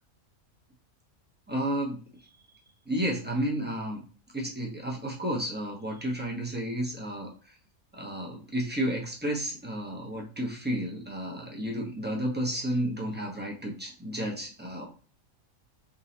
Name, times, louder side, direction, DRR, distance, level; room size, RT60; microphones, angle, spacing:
voice 1, 1.5-2.0 2.9-4.0 4.3-7.5 7.9-14.9, right 1 dB, 10° right, -1 dB, 0.7 m, -32 dB
3.8 x 2.9 x 2.7 m, 0.38 s
omnidirectional pair, 1.5 m